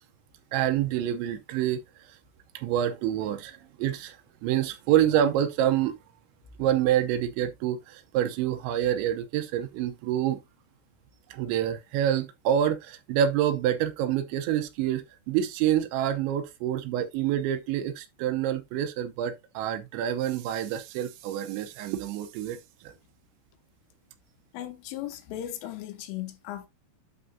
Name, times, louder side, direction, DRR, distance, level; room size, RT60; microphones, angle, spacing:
voice 1, 0.5-1.8 2.6-4.2 4.4-6.0 6.6-10.4 11.3-22.6 22.8-22.9, right 10 dB, 80° right, 2.7 m, -27 dB
voice 2, 24.5-26.7, left 12 dB, 85° left, 3.4 m, -37 dB
11.5 x 4.8 x 2.6 m
omnidirectional pair, 5.8 m